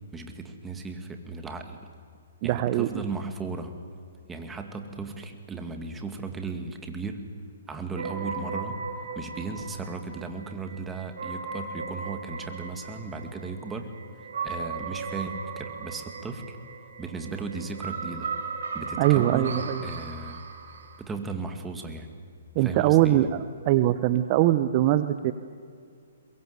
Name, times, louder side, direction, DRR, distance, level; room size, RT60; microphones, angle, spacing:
voice 1, 0.1-1.8 2.4-3.8 4.3-7.2 7.7-8.8 9.2-13.9 14.4-16.6 17.0-18.3 18.7-20.4 21.0-22.1 22.6-23.3, right 4 dB, 10° right, 5 dB, 2.2 m, -36 dB
voice 2, 2.4-3.0 19.0-19.9 22.5-25.3, right 14 dB, 35° right, 12 dB, 0.8 m, -22 dB
sound 1, 7.9-21.0, right 5 dB, 70° right, 3.8 m, -37 dB
22.5 x 22.0 x 8.3 m, 2.2 s
hypercardioid pair, 145°, 0 cm